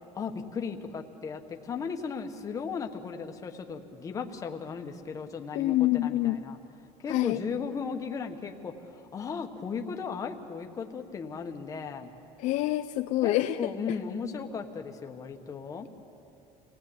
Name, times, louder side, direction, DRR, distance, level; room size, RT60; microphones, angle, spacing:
voice 1, 0.1-6.6 7.0-12.1 13.2-15.9, left 5 dB, 20° left, 4 dB, 1.3 m, -36 dB
voice 2, 5.5-6.4 7.1-7.4 12.4-13.6, left 16 dB, 55° left, 8 dB, 0.5 m, -26 dB
28.5 x 18.0 x 8.7 m, 2.7 s
cardioid pair, 170°, 15 cm